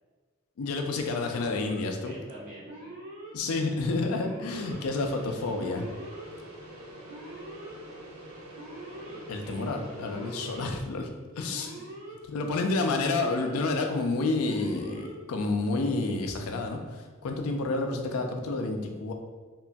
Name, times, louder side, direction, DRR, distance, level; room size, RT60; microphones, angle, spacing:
voice 1, 0.6-2.1 3.3-5.9 9.3-11.1 11.4-11.7 12.3-19.1, left 3 dB, 80° left, 4 dB, 0.4 m, -29 dB
Alarm, 1.2-1.8 2.6-3.3 4.1-4.8 5.6-6.3 7.1-7.7 8.5-9.2 10.0-10.7 11.5-12.2 13.0-13.6 14.4-15.1, right 2 dB, 65° right, 1.3 m, -43 dB
voice 2, 2.1-3.0 3.4-3.9 8.9-9.6 11.8-11.9, right 1 dB, 45° right, -8 dB, 0.6 m, -47 dB
sound 1, 4.5-10.7, right 1 dB, 90° right, 0.6 m, -46 dB
2.9 x 2.5 x 2.2 m, 1.4 s
head